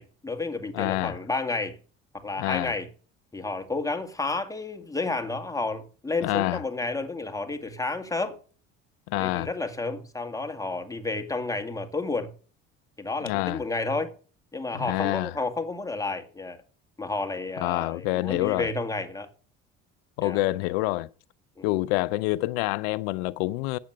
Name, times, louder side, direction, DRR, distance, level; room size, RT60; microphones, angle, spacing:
voice 1, 0.0-1.8 2.1-2.9 3.3-8.4 9.1-12.3 13.0-14.1 14.5-16.6 17.0-19.3 20.2-20.4 21.6-21.7, left 3 dB, 10° left, 2.1 m, -31 dB
voice 2, 0.7-1.2 2.4-2.7 6.2-6.6 9.1-9.5 13.2-13.6 14.7-15.3 17.6-18.7 20.2-21.1 21.6-23.8, left 19 dB, 90° left, 0.5 m, -27 dB
8.6 x 7.5 x 7.6 m
supercardioid pair, 80°, 30 cm